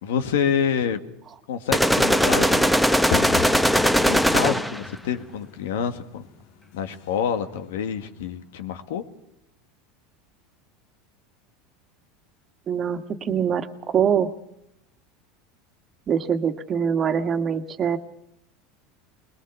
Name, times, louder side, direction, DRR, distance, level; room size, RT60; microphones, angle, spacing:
voice 1, 0.0-1.0 1.5-2.8 4.0-6.2 6.7-9.0, left 8 dB, 85° left, 9 dB, 1.9 m, -27 dB
sound 1, 1.7-4.9, equal, ahead, 1.0 m, -19 dB
sound 2, 3.1-8.6, left 9 dB, 70° left, 1.7 m, -36 dB
voice 2, 12.7-14.3 16.1-18.0, right 7 dB, 30° right, 8 dB, 1.7 m, -24 dB
21.5 x 21.0 x 7.1 m, 0.80 s
supercardioid pair, 125°, 0 cm